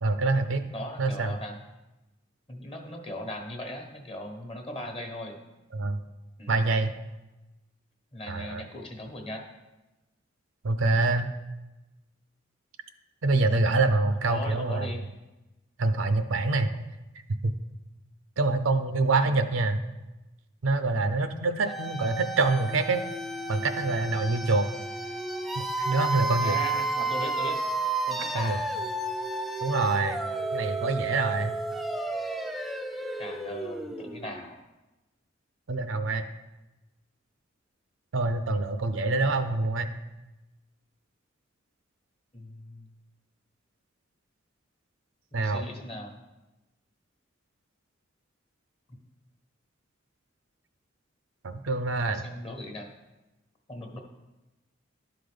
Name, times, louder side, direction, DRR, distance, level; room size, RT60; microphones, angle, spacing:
voice 1, 0.0-0.7 1.0-1.4 5.7-6.0 6.5-6.9 8.3-8.6 10.6-11.3 13.2-14.9 15.8-16.9 17.4-17.5 18.4-19.8 20.6-23.0 23.5-24.7 25.6-26.6 28.3-28.6 29.6-30.2 30.5-31.5 35.7-36.3 38.1-40.0 45.3-45.7 51.4-52.2, right 3 dB, 75° right, 9 dB, 0.6 m, -26 dB
voice 2, 0.7-1.6 2.5-5.4 6.4-6.6 8.1-9.4 14.2-15.0 19.1-19.4 26.4-27.6 28.1-28.7 33.2-34.6 42.3-42.9 45.3-46.2 52.0-52.9 53.7-54.0, left 1 dB, 30° left, 3 dB, 1.1 m, -39 dB
sound 1, 21.7-34.5, right 2 dB, ahead, 0.4 m, -32 dB
11.5 x 4.0 x 5.1 m, 1.0 s
head